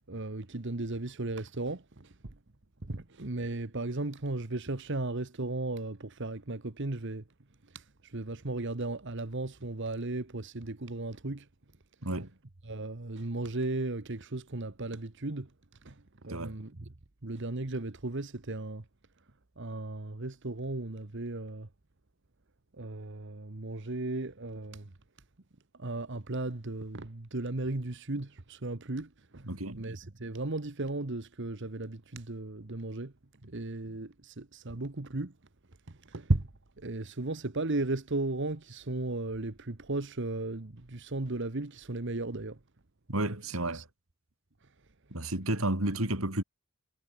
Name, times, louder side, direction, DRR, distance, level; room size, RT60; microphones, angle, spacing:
voice 1, 0.1-2.3 2.8-7.2 7.7-11.5 12.6-15.5 15.8-16.9 17.2-18.8 19.6-21.7 22.8-24.9 25.8-29.5 29.7-33.1 33.5-35.3 35.9-36.5 36.8-42.6 43.5-43.8, right 2 dB, 60° right, 1.3 m, -35 dB
voice 2, 29.4-29.8 43.1-43.9 45.1-46.4, right 1 dB, 75° right, 3.7 m, -31 dB
head